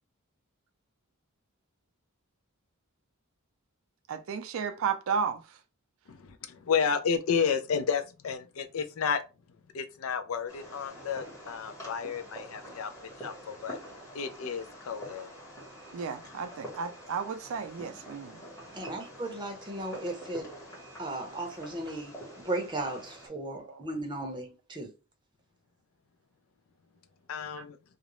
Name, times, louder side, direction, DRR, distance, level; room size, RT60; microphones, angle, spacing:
voice 1, 4.1-5.4 15.9-18.4 23.7-23.8 27.6-27.7, right 6 dB, 65° right, 0.4 m, -33 dB
voice 2, 6.1-9.2 9.7-13.8 14.1-15.3 27.3-27.8, left 6 dB, 75° left, 0.4 m, -31 dB
Fireworks, 10.5-23.3, equal, 15° left, 1.1 m, -46 dB
voice 3, 18.7-20.5 21.0-22.1 22.4-24.9, right 2 dB, 20° right, 0.6 m, -36 dB
2.4 x 2.0 x 3.0 m
head